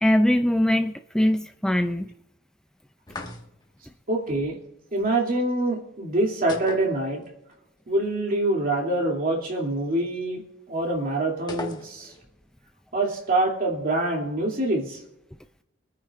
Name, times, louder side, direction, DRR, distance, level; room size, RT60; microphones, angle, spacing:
voice 1, 0.0-2.1, left 1 dB, 5° left, 7 dB, 0.4 m, -22 dB
sound 1, 3.1-3.8 6.5-7.5 7.8-7.9 11.5-12.3, left 2 dB, 20° left, 1.6 m, -37 dB
voice 2, 4.1-4.6 4.9-7.2 7.9-10.4 10.7-12.1 12.9-15.0, right 2 dB, 45° right, 0 dB, 2.8 m, -25 dB
24.5 x 9.7 x 2.5 m, 0.86 s
head